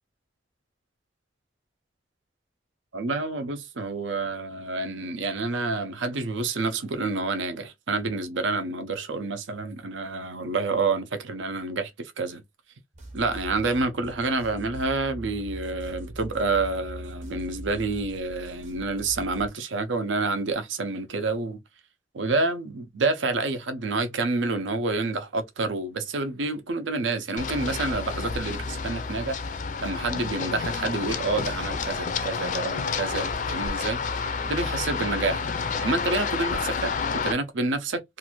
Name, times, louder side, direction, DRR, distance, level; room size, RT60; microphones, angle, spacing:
voice 1, 2.9-12.4 13.1-21.6 22.1-29.4 29.8-36.9 37.2-38.0, right 3 dB, 85° right, 0.6 m, -28 dB
sound 1, 12.9-19.5, right 1 dB, 40° right, 0.8 m, -41 dB
Run, 27.4-37.3, left 5 dB, 40° left, 0.4 m, -30 dB
2.5 x 2.5 x 2.9 m
head